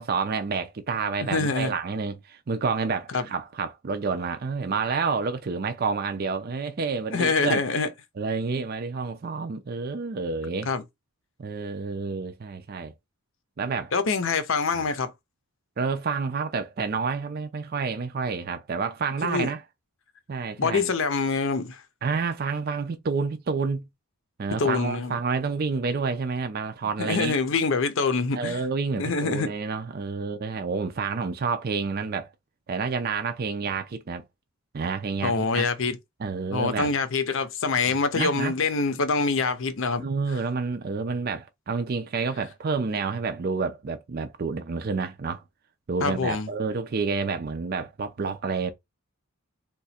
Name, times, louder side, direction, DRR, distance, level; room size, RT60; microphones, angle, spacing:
voice 1, 0.0-7.6 8.2-10.7 11.4-12.9 13.6-13.9 14.7-14.9 15.8-19.6 20.3-20.9 22.0-23.9 24.4-27.3 28.3-32.3 32.7-34.2 34.7-35.7 36.2-36.9 38.1-38.5 40.0-45.4 45.9-48.7, right 4 dB, 40° right, 0.4 m, -29 dB
voice 2, 1.3-1.7 3.1-3.2 7.1-7.9 10.7-10.8 13.9-15.1 19.2-19.5 20.6-21.8 24.6-25.1 27.0-28.6 29.0-29.5 35.2-36.0 36.5-40.0 46.0-46.5, left 4 dB, 60° left, 0.6 m, -25 dB
2.8 x 2.4 x 4.2 m
head